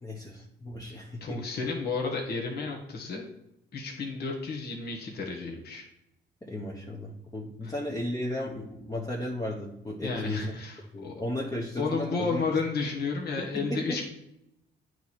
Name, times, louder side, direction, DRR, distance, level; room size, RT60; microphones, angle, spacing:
voice 1, 0.0-1.4 6.4-10.4 10.9-12.4 13.5-14.0, left 1 dB, 15° left, -3 dB, 1.0 m, -35 dB
voice 2, 0.9-3.2 3.7-5.9 7.6-7.7 10.0-11.2 11.8-14.0, left 4 dB, 50° left, -1 dB, 1.3 m, -32 dB
9.1 x 3.1 x 4.2 m, 0.83 s
cardioid pair, 90°, 20 cm